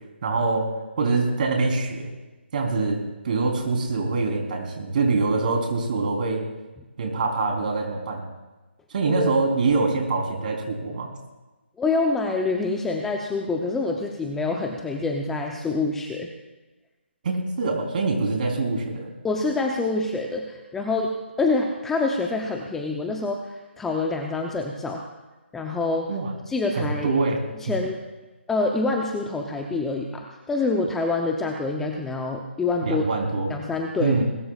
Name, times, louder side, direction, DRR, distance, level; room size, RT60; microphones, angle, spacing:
voice 1, 0.2-2.1 2.5-6.4 7.0-8.2 8.9-11.1 17.2-19.1 26.1-26.3 26.7-27.4 32.8-33.5 34.0-34.2, right 3 dB, 45° right, 2 dB, 3.7 m, -24 dB
voice 2, 11.8-16.3 19.2-25.0 25.5-26.1 26.5-27.1 27.6-28.0 28.5-33.0 33.5-34.2, left 3 dB, 5° left, 1 dB, 0.7 m, -26 dB
21.0 x 20.5 x 2.4 m, 1.1 s
hypercardioid pair, 160°, 7 cm